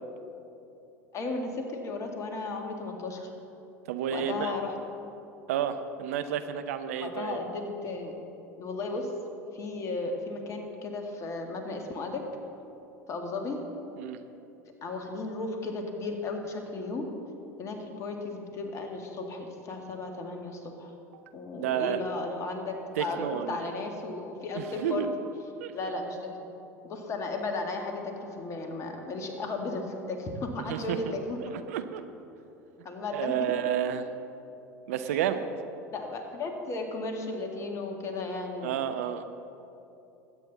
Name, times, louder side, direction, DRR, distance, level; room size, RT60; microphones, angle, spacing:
voice 1, 1.1-3.3 4.1-4.8 7.0-8.2 8.6-9.1 9.5-12.2 13.1-13.6 14.8-17.1 17.6-20.9 21.3-25.1 25.7-26.3 26.8-31.6 32.8-33.5 35.1-35.2 35.9-38.8, left 3 dB, 35° left, 3 dB, 1.9 m, -35 dB
voice 2, 3.9-4.5 5.5-7.4 14.0-14.2 21.6-22.0 23.0-23.6 24.5-25.1 25.6-25.7 30.7-32.0 33.1-34.1 34.9-35.5 38.6-39.2, right 9 dB, 65° right, 9 dB, 0.7 m, -31 dB
20.5 x 8.9 x 4.0 m, 2.9 s
figure-of-eight pair, 75°, 8 cm